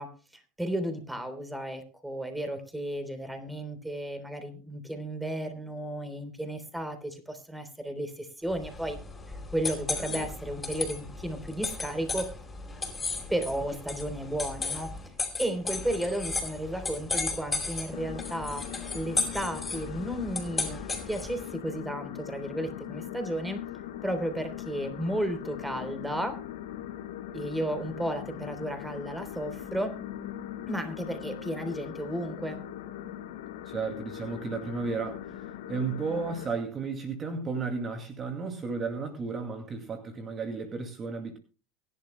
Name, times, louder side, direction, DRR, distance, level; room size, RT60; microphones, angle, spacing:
voice 1, 0.0-9.0 9.3-12.3 13.3-14.9 15.4-18.7 18.9-23.6 24.0-26.4 27.3-30.0 30.7-32.6, right 1 dB, 5° right, 8 dB, 3.5 m, -33 dB
sound 1, 8.6-21.4, left 3 dB, 15° left, 4.9 m, -35 dB
sound 2, 17.9-36.5, left 11 dB, 85° left, 2.6 m, -40 dB
voice 2, 33.7-41.4, right 4 dB, 30° right, 6 dB, 2.4 m, -33 dB
23.0 x 11.5 x 2.2 m, 0.34 s
supercardioid pair, 105°, 0 cm